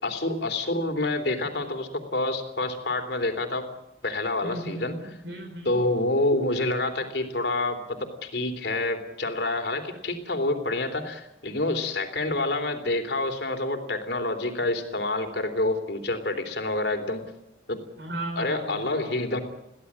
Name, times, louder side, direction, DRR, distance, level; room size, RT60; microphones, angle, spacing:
voice 1, 0.0-3.7 4.0-5.0 5.6-17.2 17.7-17.8 18.4-19.4, left 2 dB, 60° left, 6 dB, 3.4 m, -27 dB
voice 2, 4.4-5.8 18.0-19.3, right 1 dB, 70° right, 3 dB, 5.1 m, -36 dB
22.5 x 16.5 x 8.8 m, 0.89 s
head